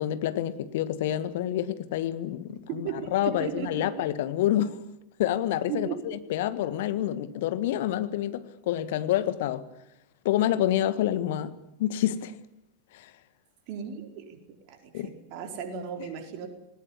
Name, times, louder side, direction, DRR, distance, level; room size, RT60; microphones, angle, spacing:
voice 1, 0.0-4.7 5.2-9.6 10.2-11.5 11.8-12.4 12.9-13.1 14.9-15.1, left 12 dB, 55° left, 1.6 m, -28 dB
voice 2, 2.7-4.0 5.7-6.0 13.7-14.3 14.7-16.5, right 8 dB, 45° right, 4.4 m, -36 dB
19.5 x 18.5 x 9.9 m
figure-of-eight pair, 90°, 0 cm